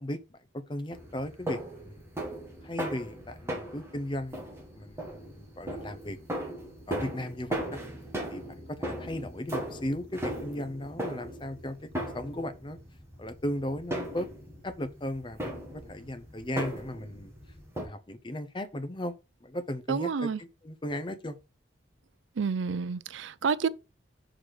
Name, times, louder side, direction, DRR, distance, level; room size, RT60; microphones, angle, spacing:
voice 1, 0.0-2.0 2.6-4.5 4.7-6.2 6.9-7.8 8.3-8.4 8.7-12.8 13.2-14.3 14.6-17.3 17.8-19.1 19.4-21.4, left 1 dB, 25° left, 0.6 m, -36 dB
sound 1, 0.9-17.9, right 1 dB, 15° right, 1.7 m, -38 dB
voice 2, 19.9-20.4 22.4-23.7, right 5 dB, 80° right, 0.4 m, -29 dB
6.3 x 3.9 x 4.8 m
head